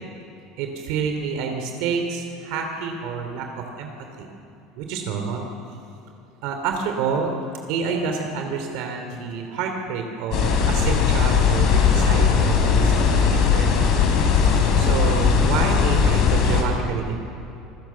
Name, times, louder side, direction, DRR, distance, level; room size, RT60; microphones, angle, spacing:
voice 1, 0.6-3.9 4.2-4.3 4.8-5.5 6.4-7.3 7.7-14.0 14.8-17.2, right 5 dB, 65° right, 4 dB, 2.8 m, -28 dB
sound 1, 10.3-16.6, left 6 dB, 50° left, 4.1 m, -18 dB
27.0 x 17.0 x 7.4 m, 2.8 s
cardioid pair, 155°, 0 cm